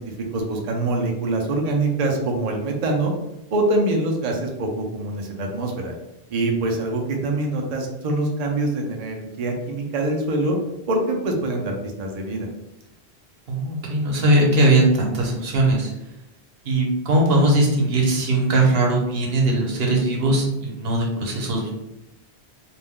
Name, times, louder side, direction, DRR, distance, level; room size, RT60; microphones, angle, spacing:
voice 1, 0.0-3.1 3.5-5.9 6.3-10.6 10.9-12.5, right 2 dB, 50° right, 1 dB, 0.5 m, -24 dB
voice 2, 13.5-15.9 16.6-21.9, right 1 dB, 70° right, -1 dB, 1.0 m, -20 dB
2.5 x 2.1 x 3.5 m, 0.90 s
omnidirectional pair, 1.1 m